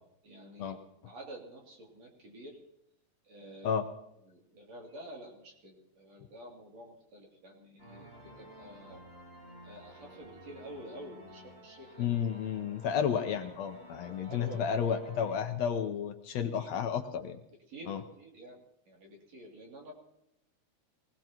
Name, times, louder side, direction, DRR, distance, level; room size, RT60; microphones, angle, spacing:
voice 1, 0.2-0.7 1.0-2.6 3.2-3.7 4.2-9.0 9.6-12.1 14.0-14.6 16.5-16.8 17.7-18.6 18.9-19.9, right 1 dB, 60° right, -1 dB, 4.0 m, -49 dB
sound 1, 7.8-15.4, equal, 30° right, 7.6 m, -53 dB
voice 2, 12.0-17.4 17.9-18.0, left 7 dB, 70° left, 7 dB, 1.9 m, -32 dB
23.0 x 18.5 x 3.0 m, 0.80 s
omnidirectional pair, 3.4 m